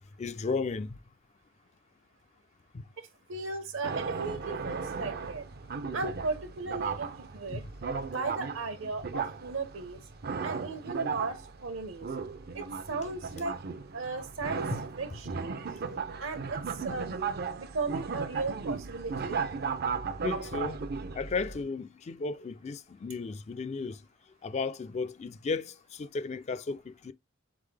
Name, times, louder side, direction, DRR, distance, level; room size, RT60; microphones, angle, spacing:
voice 1, 0.2-1.0 2.7-2.8 7.5-7.7 14.7-14.8 15.8-16.0 20.2-20.9 21.1-24.0 24.4-27.1, left 4 dB, 35° left, 0.4 m, -34 dB
voice 2, 3.3-5.4 5.9-7.6 8.1-10.0 10.4-12.1 12.5-13.6 13.9-14.7 15.0-15.6 16.2-17.3 17.6-19.4, right 3 dB, 70° right, 1.0 m, -36 dB
sound 1, 3.8-21.6, right 5 dB, 50° right, 0.5 m, -36 dB
4.0 x 3.7 x 3.3 m
head